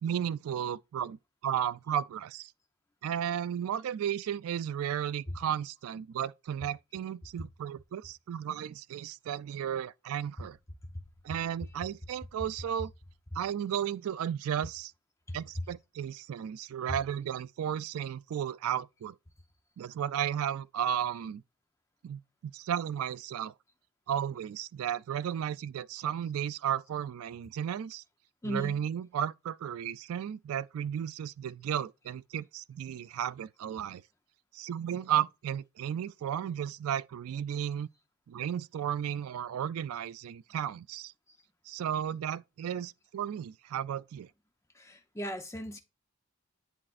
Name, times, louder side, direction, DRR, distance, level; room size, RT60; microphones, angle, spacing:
voice 1, 0.0-2.5 3.0-10.6 11.2-12.9 13.3-14.9 15.3-19.2 19.8-21.4 22.0-23.5 24.1-28.0 28.4-34.0 34.5-37.9 38.3-41.1 41.7-44.3, right 9 dB, 75° right, 0.3 m, -34 dB
voice 2, 28.4-28.8 44.8-45.8, equal, 15° left, 0.6 m, -37 dB
10.0 x 4.1 x 2.5 m
head